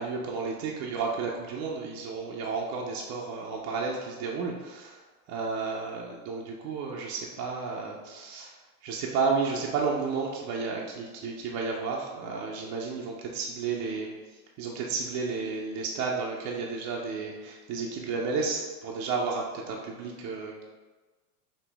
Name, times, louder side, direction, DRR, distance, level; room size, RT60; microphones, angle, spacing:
voice 1, 0.0-8.6 8.8-14.1 14.6-20.6, right 4 dB, 35° right, -2 dB, 0.5 m, -32 dB
5.0 x 2.6 x 3.4 m, 1.3 s
supercardioid pair, 130°, 47 cm